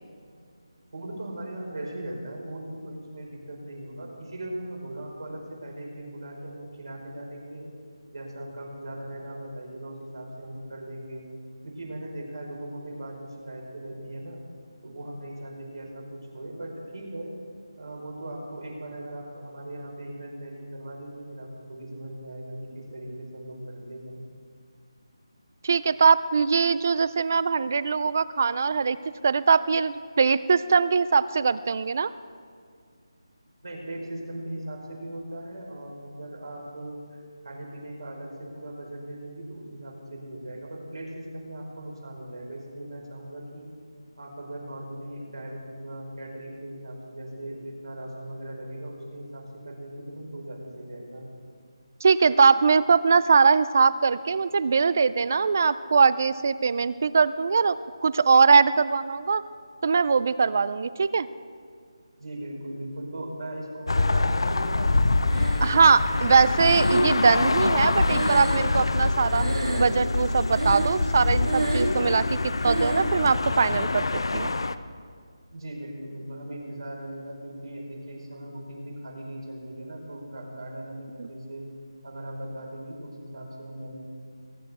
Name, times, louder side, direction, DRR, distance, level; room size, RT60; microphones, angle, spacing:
voice 1, 0.9-7.7 8.1-11.2 11.6-14.4 14.8-17.3 17.8-24.2 33.6-43.7 44.2-51.2 62.1-66.6 75.5-81.7 82.0-84.0, right 1 dB, 65° right, -1 dB, 4.7 m, -39 dB
voice 2, 25.6-29.0 29.2-32.1 52.0-57.8 58.0-59.4 59.8-61.3 65.6-69.5 69.8-74.5 81.2-81.3, right 5 dB, 30° right, 17 dB, 0.3 m, -21 dB
sound 1, 63.9-74.7, left 3 dB, 65° left, 0.6 m, -25 dB
Breathing, 65.3-66.0 66.6-69.1 69.3-70.1 70.5-71.1 71.4-72.0 72.6-73.1, right 2 dB, 90° right, 2.3 m, -29 dB
22.0 x 10.5 x 4.2 m, 2.1 s
figure-of-eight pair, 175°, 3 cm